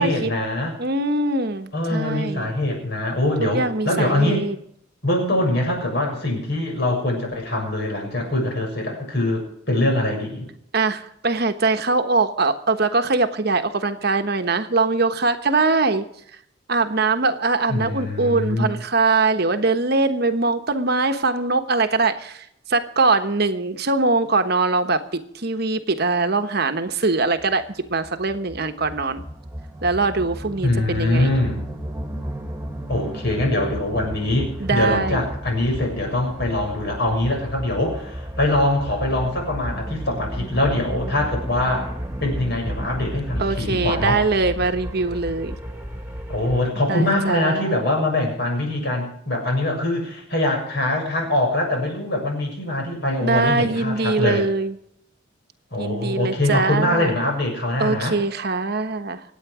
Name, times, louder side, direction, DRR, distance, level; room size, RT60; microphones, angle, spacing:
voice 1, 0.0-0.7 1.7-4.5 5.0-10.5 17.7-18.7 30.6-31.7 32.9-41.9 42.2-44.2 46.3-54.5 55.7-58.2, left 1 dB, 55° left, 1 dB, 6.9 m, -23 dB
voice 2, 0.8-2.5 3.4-4.5 10.7-16.1 16.7-25.0 25.3-29.2 29.8-31.3 34.6-35.3 43.4-45.6 46.9-47.8 53.2-54.7 55.8-57.1 57.8-59.2, right 3 dB, 55° right, 8 dB, 1.2 m, -22 dB
sound 1, 27.4-46.6, right 1 dB, 10° right, 2.1 m, -33 dB
25.5 x 9.2 x 4.9 m, 0.70 s
head